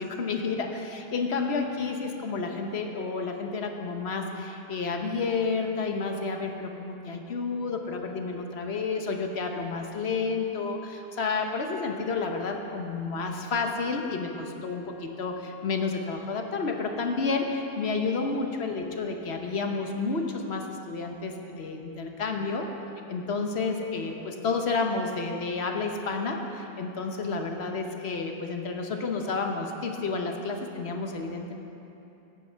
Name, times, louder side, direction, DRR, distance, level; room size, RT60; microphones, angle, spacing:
voice 1, 0.0-22.7 23.1-31.6, left 4 dB, 75° left, 3 dB, 1.3 m, -30 dB
16.5 x 9.0 x 4.5 m, 2.9 s
omnidirectional pair, 1.1 m